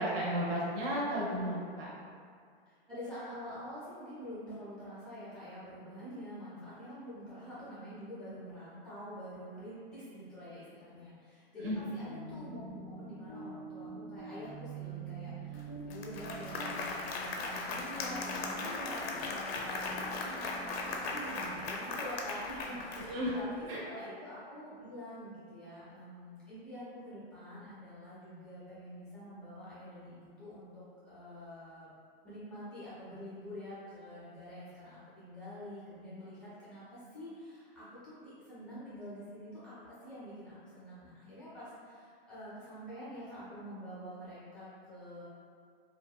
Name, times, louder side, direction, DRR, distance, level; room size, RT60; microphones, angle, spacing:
voice 1, 0.0-1.9 11.6-11.8 23.0-23.3 23.7-23.8, equal, 65° right, -5 dB, 0.8 m, -33 dB
voice 2, 2.7-31.9 32.2-39.8 40.0-45.2, equal, 5° left, -12 dB, 0.4 m, -47 dB
sound 1, 11.8-21.8, right 3 dB, 30° right, 0.7 m, -46 dB
Applause, 15.5-15.6 15.9-23.4, left 3 dB, 75° left, 0.5 m, -38 dB
2.6 x 2.1 x 2.2 m, 2.2 s
hypercardioid pair, 155°, 31 cm